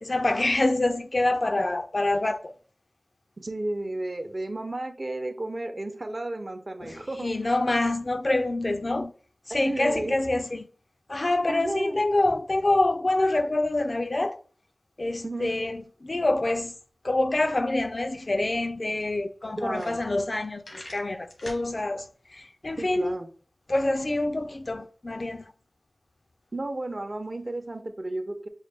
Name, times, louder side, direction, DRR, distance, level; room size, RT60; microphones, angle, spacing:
voice 1, 0.0-2.5 6.8-9.1 9.5-10.7 11.1-14.4 15.0-16.8 17.0-23.1 23.7-25.5, left 2 dB, 50° left, 0.3 m, -26 dB
voice 2, 3.4-7.4 9.5-10.1 11.5-12.0 15.2-15.5 19.6-20.0 22.8-23.3 26.5-28.5, right 2 dB, 50° right, 0.6 m, -33 dB
sound 1, 18.7-18.8 19.3-19.4 19.6-20.3 20.6-21.6, left 1 dB, 90° left, 1.0 m, -43 dB
6.2 x 2.1 x 3.3 m
wide cardioid pair, 50°, 0 cm